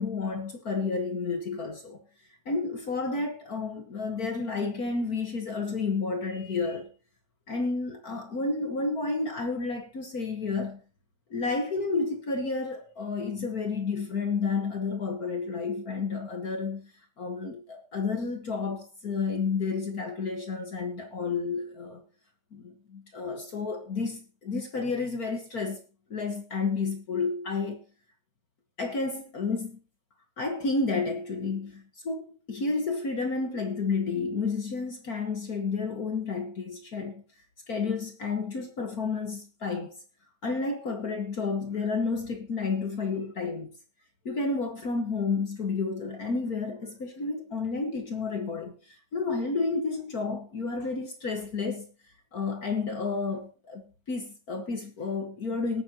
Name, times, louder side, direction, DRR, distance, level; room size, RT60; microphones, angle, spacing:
voice 1, 0.0-2.0 2.4-6.9 7.5-10.8 11.3-16.9 17.2-22.0 22.5-25.8 26.1-27.8 28.8-29.8 30.4-37.2 37.7-40.0 40.4-43.7 44.2-51.9 52.3-53.8 54.1-55.8, left 4 dB, 50° left, 1.1 m, -31 dB
18.5 x 9.5 x 2.9 m
omnidirectional pair, 3.5 m